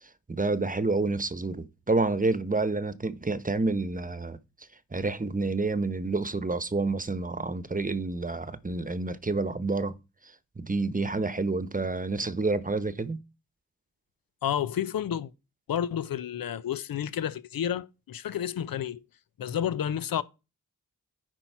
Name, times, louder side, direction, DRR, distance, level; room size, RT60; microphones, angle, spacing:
voice 1, 0.0-4.4 4.9-9.9 10.2-13.2, right 3 dB, 25° right, 0.9 m, -29 dB
voice 2, 14.4-15.3 15.7-19.0 19.4-20.2, left 9 dB, 80° left, 0.7 m, -30 dB
9.9 x 4.5 x 4.6 m
cardioid pair, 45°, 34 cm